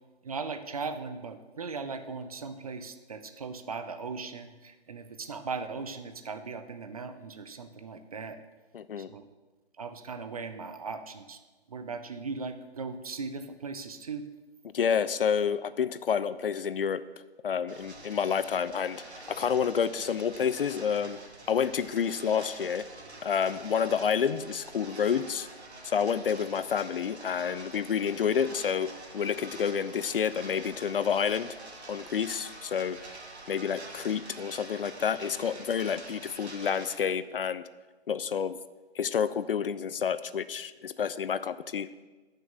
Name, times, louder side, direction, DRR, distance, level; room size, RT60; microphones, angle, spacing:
voice 1, 0.2-8.4 9.0-9.2 9.8-11.4 11.7-14.2, right 4 dB, 35° right, 9 dB, 0.5 m, -38 dB
voice 2, 8.7-9.1 14.7-17.0 17.4-21.2 21.5-22.9 23.2-25.5 25.8-31.5 31.9-33.0 33.5-37.6 38.1-38.6 39.0-41.9, left 7 dB, 60° left, 15 dB, 0.5 m, -29 dB
sound 1, 17.7-37.0, right 2 dB, 80° right, 1.9 m, -46 dB
8.5 x 6.4 x 6.0 m, 1.2 s
hypercardioid pair, 155°, 32 cm